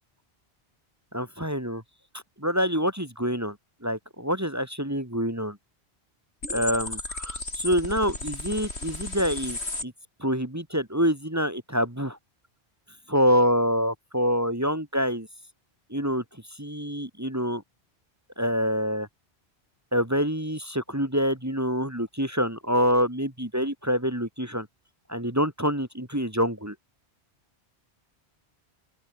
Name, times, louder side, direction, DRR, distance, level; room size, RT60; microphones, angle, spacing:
voice 1, 1.1-1.8 2.1-3.6 3.8-5.6 6.5-9.9 10.2-12.2 13.1-15.3 15.9-16.2 16.6-17.6 18.4-19.1 19.9-24.7 25.1-26.7, equal, 15° right, 2.5 m, -26 dB
sound 1, 6.4-9.8, left 2 dB, 85° left, 4.6 m, -34 dB
open air
omnidirectional pair, 1.1 m